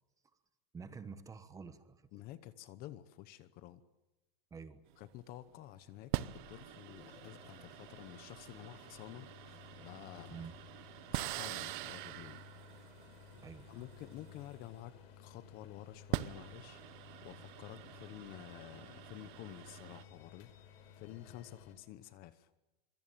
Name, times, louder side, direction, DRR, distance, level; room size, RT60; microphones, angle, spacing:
voice 1, 0.7-2.1 4.5-4.8 10.3-10.6 13.4-13.8, right 5 dB, 10° right, 11 dB, 1.2 m, -49 dB
voice 2, 2.1-3.8 5.0-9.3 9.8-10.5 11.1-12.4 13.7-16.8 17.2-20.5 21.0-22.5, left 14 dB, 30° left, 14 dB, 1.0 m, -51 dB
Vader Machine, 4.9-5.2 6.1-15.1 15.9-20.0, right 16 dB, 50° right, 1.0 m, -44 dB
sound 1, 6.1-21.8, left 8 dB, 80° left, 4.5 m, -57 dB
25.5 x 23.5 x 9.1 m, 1.1 s
supercardioid pair, 175°, 31 cm